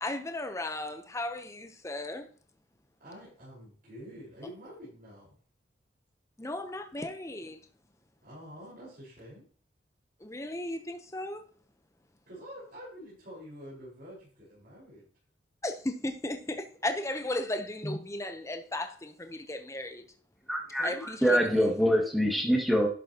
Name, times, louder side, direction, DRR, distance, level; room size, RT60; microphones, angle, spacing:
voice 1, 0.0-2.3 6.4-7.6 10.2-11.4 15.6-20.0 20.8-21.4, left 1 dB, 15° left, 0.8 m, -35 dB
voice 2, 3.0-5.4 8.2-9.4 12.3-15.1 20.8-21.7, equal, 50° right, 4.9 m, -47 dB
voice 3, 20.5-22.9, equal, ahead, 2.0 m, -25 dB
11.5 x 7.6 x 2.9 m
head